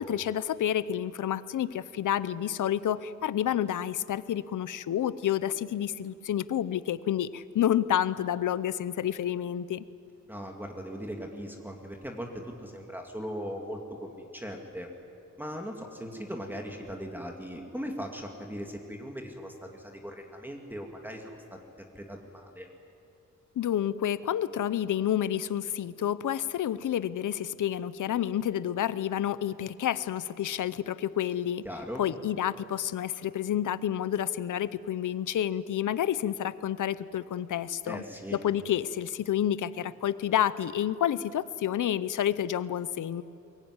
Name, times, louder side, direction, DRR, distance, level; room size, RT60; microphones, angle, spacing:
voice 1, 0.0-9.8 23.6-31.6 32.0-38.0 38.3-43.2, left 10 dB, 85° left, 16 dB, 0.7 m, -29 dB
voice 2, 10.3-14.9 15.4-21.7 22.0-22.7 31.6-32.0 37.9-38.4, equal, 5° right, 2 dB, 2.2 m, -39 dB
23.0 x 22.5 x 9.7 m, 2.7 s
wide cardioid pair, 165°, 30 cm